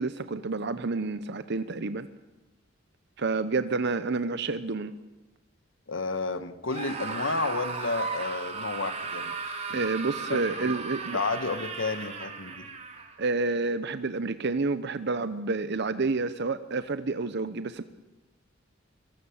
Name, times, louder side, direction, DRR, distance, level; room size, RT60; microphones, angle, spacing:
voice 1, 0.0-2.1 3.2-4.9 9.7-11.2 13.2-17.8, right 3 dB, 60° right, 11 dB, 0.8 m, -29 dB
voice 2, 5.9-9.3 9.7-9.9 10.3-10.8 11.1-12.7, left 3 dB, 75° left, 11 dB, 1.5 m, -31 dB
Screaming, 6.7-13.1, right 4 dB, 35° right, 3.8 m, -36 dB
23.5 x 23.5 x 7.2 m, 1.1 s
head